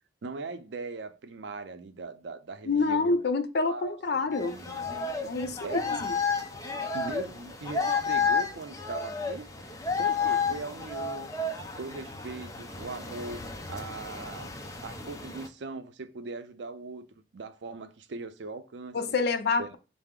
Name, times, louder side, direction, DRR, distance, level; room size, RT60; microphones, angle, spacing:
voice 1, 0.2-3.1 3.7-5.1 5.6-5.9 6.8-9.5 9.9-11.3 11.8-13.4 13.7-14.5 14.8-17.1 17.3-19.2 19.6-19.7, right 3 dB, 80° right, 0.5 m, -40 dB
voice 2, 2.7-4.6 5.2-6.1 18.9-19.8, left 3 dB, 65° left, 0.5 m, -27 dB
sound 1, 4.3-15.5, left 5 dB, 20° left, 0.5 m, -32 dB
5.6 x 2.0 x 3.6 m
head